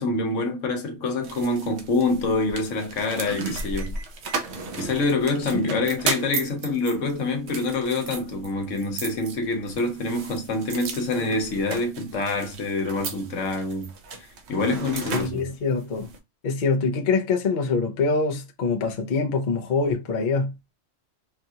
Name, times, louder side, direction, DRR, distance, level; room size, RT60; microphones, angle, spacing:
voice 1, 0.0-4.0 4.8-13.9 14.5-15.4, left 2 dB, 80° left, 1.3 m, -26 dB
sound 1, 1.2-16.2, right 4 dB, 65° right, 1.0 m, -35 dB
voice 2, 15.1-16.1 16.4-20.5, left 4 dB, 45° left, 0.7 m, -24 dB
4.6 x 2.4 x 2.7 m
omnidirectional pair, 1.3 m